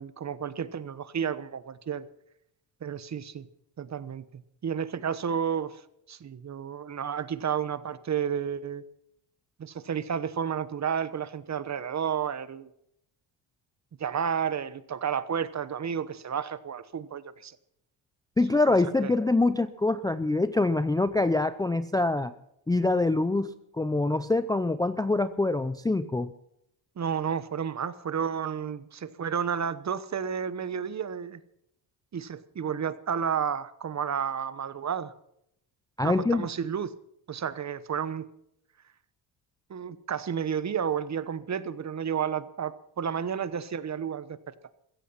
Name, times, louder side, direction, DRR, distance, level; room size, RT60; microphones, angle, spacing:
voice 1, 0.0-2.0 2.8-3.5 3.8-5.8 6.1-8.8 9.6-12.7 14.0-17.6 19.0-19.1 27.0-31.4 32.1-35.1 36.0-36.9 37.3-38.2 39.7-44.5, right 7 dB, 35° right, 15 dB, 1.1 m, -31 dB
voice 2, 18.4-22.3 22.7-26.3 36.0-36.5, left 2 dB, 10° left, 11 dB, 0.5 m, -25 dB
15.5 x 15.0 x 5.7 m, 0.76 s
cardioid pair, 115°, 48 cm